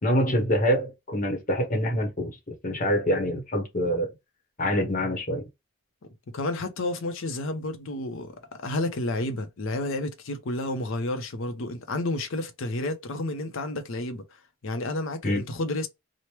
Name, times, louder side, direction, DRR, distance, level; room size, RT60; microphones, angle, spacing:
voice 1, 0.0-2.4 2.6-4.1 4.6-5.4 15.2-15.4, equal, 35° left, 0.8 m, -25 dB
voice 2, 6.3-14.2 14.6-15.9, left 2 dB, 65° left, 0.5 m, -31 dB
2.9 x 2.1 x 3.1 m
head